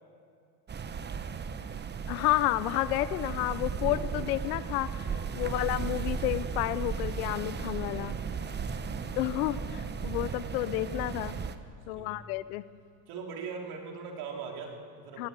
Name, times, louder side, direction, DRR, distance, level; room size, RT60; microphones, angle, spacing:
sound 1, 0.7-11.6, right 6 dB, 25° right, 1.0 m, -35 dB
voice 1, 2.1-8.2 9.2-11.3 11.9-12.6 15.2-15.3, left 16 dB, 90° left, 16 dB, 0.9 m, -31 dB
voice 2, 5.3-5.6 7.9-9.0 11.9-12.2 13.1-15.3, right 5 dB, 65° right, 1 dB, 3.9 m, -42 dB
19.5 x 18.0 x 8.3 m, 2.4 s
supercardioid pair, 110°, 42 cm